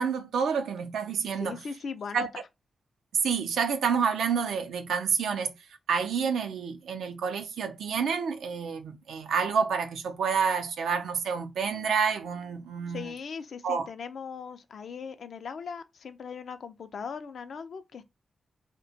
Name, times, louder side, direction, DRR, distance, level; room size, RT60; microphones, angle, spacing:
voice 1, 0.0-1.6 2.1-2.3 3.1-5.5 5.9-13.1 13.6-13.9, right 6 dB, 90° right, 0.4 m, -28 dB
voice 2, 1.4-2.3 12.9-18.0, left 6 dB, 75° left, 0.3 m, -39 dB
2.8 x 2.1 x 2.6 m
cardioid pair, 45°, 0 cm